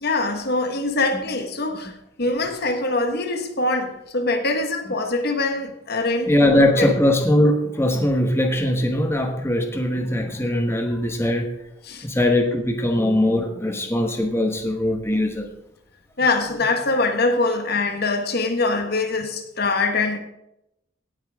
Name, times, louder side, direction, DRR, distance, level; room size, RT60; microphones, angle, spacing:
voice 1, 0.0-1.9 2.2-6.9 11.9-12.0 16.2-20.2, left 3 dB, 55° left, 1.5 m, -23 dB
voice 2, 6.3-11.5 12.0-15.5, left 1 dB, 15° left, 1.2 m, -21 dB
17.5 x 8.8 x 3.6 m
head